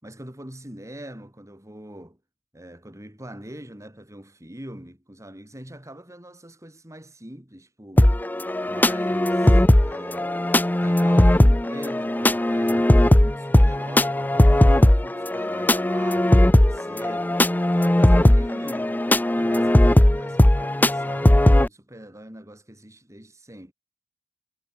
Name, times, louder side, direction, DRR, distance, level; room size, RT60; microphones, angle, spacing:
voice 1, 0.0-2.2 2.5-8.1 8.6-10.3 10.6-17.3 17.7-19.0 19.3-23.7, right 1 dB, 15° right, 3.9 m, -42 dB
sound 1, 8.0-21.7, left 1 dB, 10° left, 0.5 m, -18 dB
head